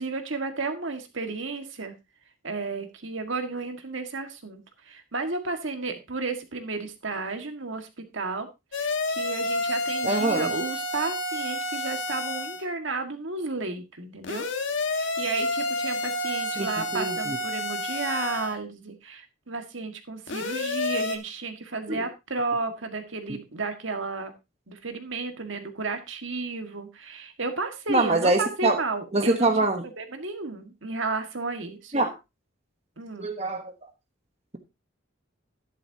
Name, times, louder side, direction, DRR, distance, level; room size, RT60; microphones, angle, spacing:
voice 1, 0.0-2.0 2.4-14.5 14.8-24.3 24.7-29.5 30.0-31.9 33.0-33.3, right 3 dB, 70° right, 6 dB, 1.8 m, -33 dB
sound 1, 8.7-12.7 14.2-18.5 20.3-21.2, left 1 dB, 70° left, 1.6 m, -29 dB
voice 2, 10.0-10.5 16.6-17.4 21.9-22.0 27.9-28.8 29.1-29.8 31.9-32.1 33.2-33.7, right 2 dB, 30° right, 5 dB, 1.2 m, -24 dB
11.5 x 11.0 x 2.8 m, 0.24 s
head